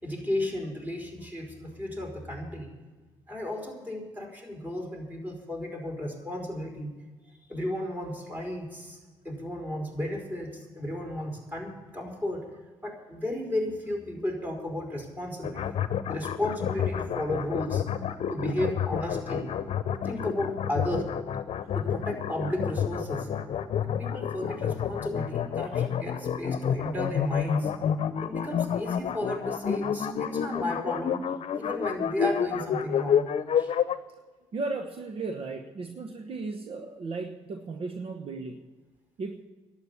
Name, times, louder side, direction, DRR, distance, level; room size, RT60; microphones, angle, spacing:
voice 1, 0.0-2.7 3.3-6.9 7.2-9.0 9.2-12.5 12.8-15.7 16.1-19.5 20.0-21.1 21.7-23.3 23.8-27.7 28.2-31.2 31.5-33.3 33.6-33.7, left 1 dB, 15° right, 1 dB, 5.0 m, -34 dB
sound 1, 15.4-34.0, left 8 dB, 60° left, 0.8 m, -29 dB
voice 2, 34.5-38.6 39.2-39.4, right 3 dB, 55° right, 6 dB, 1.1 m, -35 dB
11.5 x 8.9 x 9.9 m, 1.3 s
supercardioid pair, 65°, 12 cm